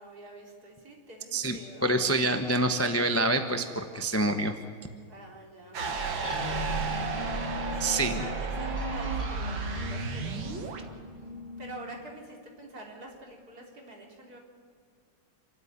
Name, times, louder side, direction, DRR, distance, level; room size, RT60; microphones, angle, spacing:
voice 1, 0.0-1.9 5.1-5.8 6.2-6.5 7.7-10.7 11.6-14.4, right 1 dB, 50° right, 0 dB, 4.2 m, -46 dB
voice 2, 1.3-4.5 7.8-8.2, right 2 dB, 10° left, 6 dB, 0.8 m, -27 dB
sound 1, 5.7-10.8, right 4 dB, 80° right, 2.4 m, -33 dB
sound 2, 6.2-12.1, left 2 dB, 30° left, 2.3 m, -39 dB
28.5 x 13.5 x 9.8 m, 2.1 s
omnidirectional pair, 2.1 m